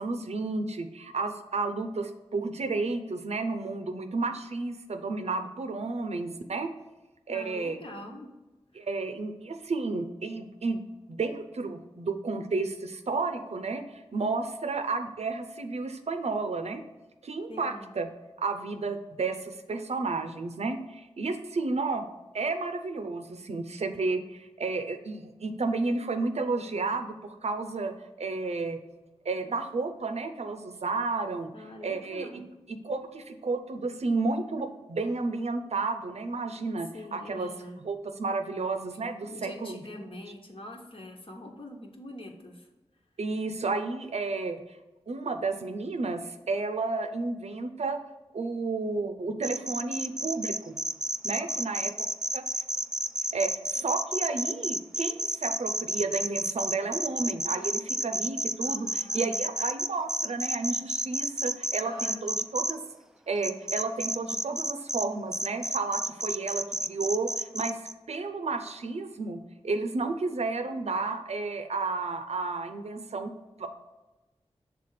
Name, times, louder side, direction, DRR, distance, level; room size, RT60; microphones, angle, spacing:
voice 1, 0.0-6.7 7.3-7.8 8.7-10.8 11.1-16.8 17.2-18.1 18.4-22.1 22.3-27.9 28.2-28.8 29.2-31.5 31.8-32.3 32.8-37.5 37.8-39.8 43.2-44.6 45.1-48.0 48.3-50.8 51.2-51.9 52.3-52.4 53.3-62.8 63.3-67.8 68.1-73.3 73.6-73.8, right 3 dB, 75° right, 8 dB, 0.6 m, -32 dB
voice 2, 7.3-8.3 8.7-8.9 17.5-17.9 31.5-32.5 36.9-37.8 39.2-42.7 51.4-51.7 53.7-53.8 58.6-59.4 61.8-62.4, left 1 dB, 55° left, 1 dB, 1.2 m, -44 dB
sound 1, 49.4-62.7 63.4-65.0 65.3-67.9, right 1 dB, 5° right, 0.3 m, -30 dB
5.9 x 3.5 x 4.9 m, 1.1 s
cardioid pair, 45°, 11 cm